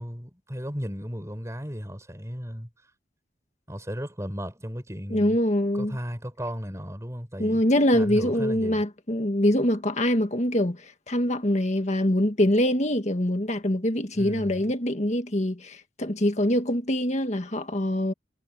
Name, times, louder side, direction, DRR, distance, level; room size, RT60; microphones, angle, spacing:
voice 1, 0.0-2.7 3.7-5.4 5.7-7.6 7.9-8.8 14.1-14.6, equal, 15° right, 6.7 m, -35 dB
voice 2, 5.1-6.0 7.4-18.1, left 1 dB, 40° left, 1.8 m, -24 dB
head